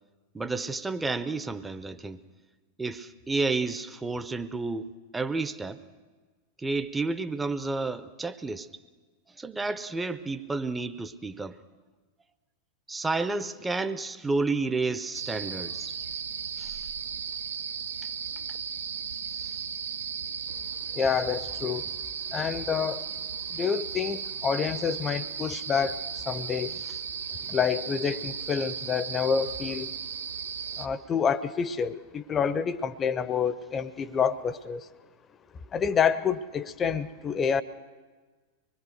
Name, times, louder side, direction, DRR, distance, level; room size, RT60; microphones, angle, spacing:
voice 1, 0.3-2.2 2.8-5.8 6.6-8.7 9.3-11.6 12.9-16.0 16.6-16.8 19.5-19.6, right 3 dB, 10° right, 11 dB, 0.7 m, -31 dB
sound 1, 15.1-30.9, right 7 dB, 65° right, 0.7 m, -36 dB
voice 2, 20.9-21.9 22.3-23.1 23.5-26.8 27.4-29.9 30.8-34.9 35.7-37.6, left 6 dB, 25° left, 16 dB, 0.8 m, -28 dB
24.5 x 21.0 x 6.4 m, 1.4 s
figure-of-eight pair, 90°, 0 cm